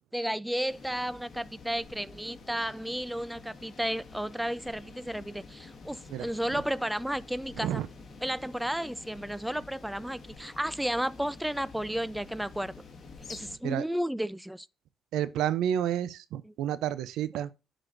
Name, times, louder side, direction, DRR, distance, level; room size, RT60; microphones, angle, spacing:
voice 1, 0.1-7.8 8.2-12.7 13.3-14.7 16.4-16.5, equal, 5° right, 0.3 m, -33 dB
sound 1, 0.7-13.6, left 4 dB, 50° left, 1.5 m, -49 dB
voice 2, 15.1-17.5, right 10 dB, 85° right, 0.5 m, -30 dB
11.0 x 4.0 x 2.5 m
cardioid pair, 90°, 0 cm